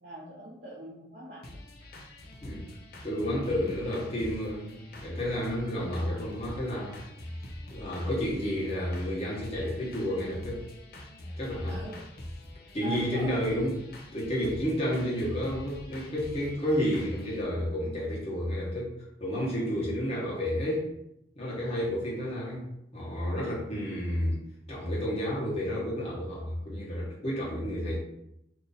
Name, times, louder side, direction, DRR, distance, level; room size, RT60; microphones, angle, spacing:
voice 1, 0.0-1.6 11.7-12.0 12.8-13.4 19.8-20.0, right 2 dB, 55° right, -6 dB, 0.7 m, -43 dB
sound 1, 1.4-17.4, left 1 dB, 55° left, 0.6 m, -44 dB
voice 2, 2.4-2.7 3.0-7.0 7.7-10.6 11.4-11.8 12.7-13.8 14.1-18.9 19.2-20.9 21.3-24.4 24.7-28.0, equal, 35° left, -6 dB, 1.3 m, -31 dB
3.0 x 2.6 x 4.0 m, 0.82 s
head